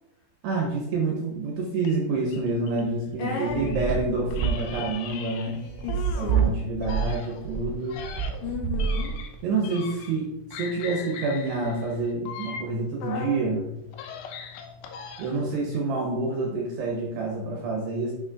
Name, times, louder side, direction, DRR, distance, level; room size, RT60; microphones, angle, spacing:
voice 1, 0.4-5.6 6.1-8.0 9.4-13.7 15.2-18.1, right 3 dB, 70° right, -1 dB, 2.7 m, -28 dB
sound 1, 1.8-3.9 4.3-6.5 6.8-10.3 10.5-13.4 13.8-15.5, left 6 dB, 90° left, 2.5 m, -40 dB
sound 2, 3.0-9.6, right 7 dB, 90° right, 3.4 m, -27 dB
voice 2, 3.2-3.8 5.5-6.5 8.4-9.1, left 4 dB, 70° left, -3 dB, 3.2 m, -34 dB
sound 3, 4.5-15.2, left 7 dB, 30° left, 2.9 m, -52 dB
9.7 x 6.3 x 2.4 m, 0.90 s
omnidirectional pair, 5.9 m